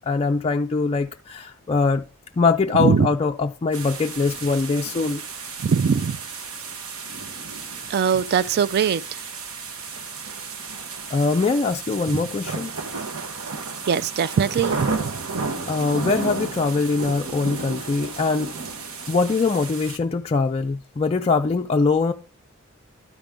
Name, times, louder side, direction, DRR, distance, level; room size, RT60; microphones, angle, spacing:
voice 1, 0.1-2.0 2.4-5.2 11.1-12.7 15.7-18.5 19.1-22.1, left 4 dB, 30° left, 0.3 m, -22 dB
sound 1, 3.7-20.0, right 4 dB, 70° right, 1.1 m, -33 dB
voice 2, 5.6-6.2 7.9-9.2 12.1-12.2 13.9-15.1, right 6 dB, 50° right, 0.3 m, -21 dB
12.5 x 5.2 x 3.4 m
head